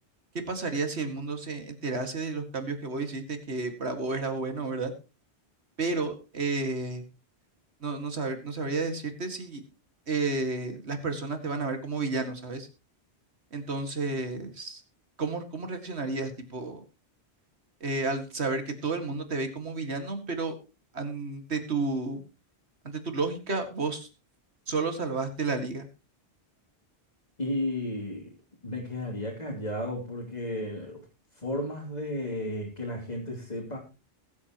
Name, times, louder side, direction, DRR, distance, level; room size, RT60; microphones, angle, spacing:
voice 1, 0.3-4.9 5.8-7.0 7.8-9.6 10.1-12.7 13.5-14.8 15.2-16.8 17.8-20.5 20.9-22.2 22.9-24.1 24.7-25.9, right 3 dB, 85° right, 7 dB, 2.4 m, -31 dB
voice 2, 27.4-28.3 28.6-31.0 31.4-33.8, left 1 dB, 40° left, -4 dB, 3.2 m, -33 dB
21.5 x 8.3 x 3.0 m, 0.30 s
omnidirectional pair, 1.1 m